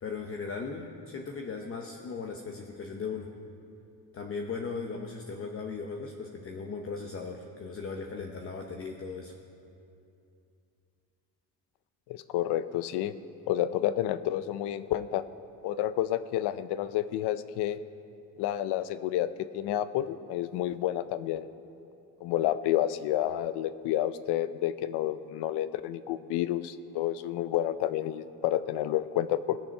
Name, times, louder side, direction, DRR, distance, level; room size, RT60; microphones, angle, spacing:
voice 1, 0.0-3.3 4.1-9.3, left 4 dB, 35° left, 2 dB, 0.8 m, -37 dB
voice 2, 12.1-13.1 13.5-15.2 15.6-17.8 18.4-21.4 22.2-29.6, left 12 dB, 85° left, 14 dB, 0.6 m, -30 dB
20.0 x 7.0 x 5.4 m, 2.6 s
cardioid pair, 130°, 39 cm